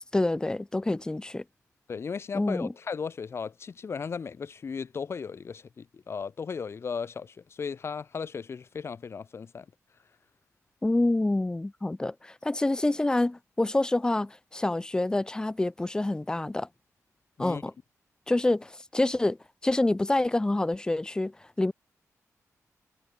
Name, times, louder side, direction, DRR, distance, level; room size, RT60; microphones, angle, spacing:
voice 1, 0.0-1.4 2.3-2.7 10.8-16.7 17.4-17.7 18.3-19.4 19.6-21.7, left 2 dB, 15° left, 1.0 m, -27 dB
voice 2, 1.9-9.7 17.4-17.6, left 5 dB, 50° left, 5.0 m, -36 dB
wide cardioid pair, 145°, 6 cm